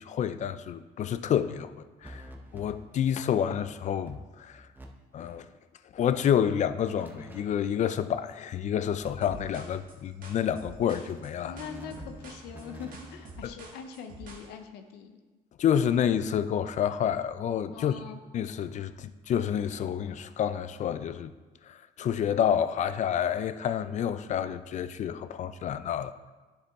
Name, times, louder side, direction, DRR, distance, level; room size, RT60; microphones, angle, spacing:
voice 1, 0.0-4.7 5.1-5.5 5.9-11.6 13.4-13.5 15.6-17.9 18.3-21.3 21.7-26.3, left 9 dB, 45° left, 0.4 m, -29 dB
sound 1, 2.0-3.2 3.6-3.7 4.0-4.9 5.1-5.5 6.8-8.0 9.0-10.0 11.5-13.5, right 1 dB, 10° right, 0.8 m, -48 dB
sound 2, 9.2-14.5, right 2 dB, 55° right, 1.4 m, -47 dB
voice 2, 11.4-15.2 17.7-18.2, left 7 dB, 80° left, 0.7 m, -43 dB
9.9 x 4.8 x 3.5 m
cardioid pair, 110°, 17 cm